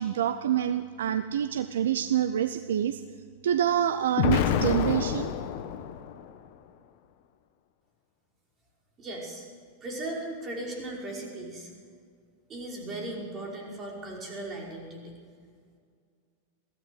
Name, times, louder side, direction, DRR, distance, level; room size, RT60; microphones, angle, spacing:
voice 1, 0.0-3.0 3.4-5.3, right 10 dB, 60° right, 12 dB, 0.6 m, -26 dB
Explosion, 4.2-6.3, left 9 dB, 50° left, 1.2 m, -27 dB
voice 2, 9.0-9.5 9.8-11.7 12.5-15.1, right 1 dB, 25° right, -1 dB, 5.4 m, -37 dB
22.0 x 15.5 x 8.0 m, 2.1 s
figure-of-eight pair, 90°, 0 cm